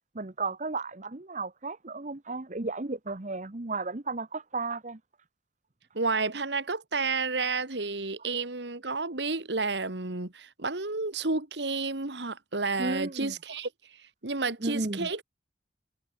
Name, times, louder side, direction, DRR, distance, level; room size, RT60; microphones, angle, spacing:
voice 1, 0.1-5.0 12.8-13.3 14.6-15.1, right 3 dB, 40° right, 1.1 m, -34 dB
voice 2, 6.0-15.2, right 3 dB, 70° right, 2.0 m, -31 dB
head